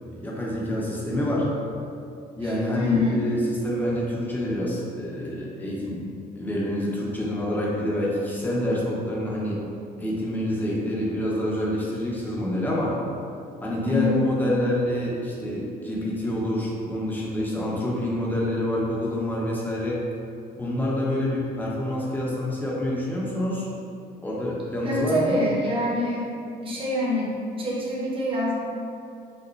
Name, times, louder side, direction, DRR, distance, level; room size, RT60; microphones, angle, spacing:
voice 1, 0.0-1.5 2.4-6.1 6.4-9.6 10.0-12.9 13.6-20.0 20.5-23.7 24.2-25.4, left 1 dB, 10° left, -5 dB, 0.8 m, -27 dB
voice 2, 2.4-3.2 13.8-14.2 24.8-26.3 26.6-28.5, left 2 dB, 30° right, -5 dB, 1.0 m, -26 dB
5.0 x 2.1 x 3.2 m, 2.6 s
cardioid pair, 110°, 17 cm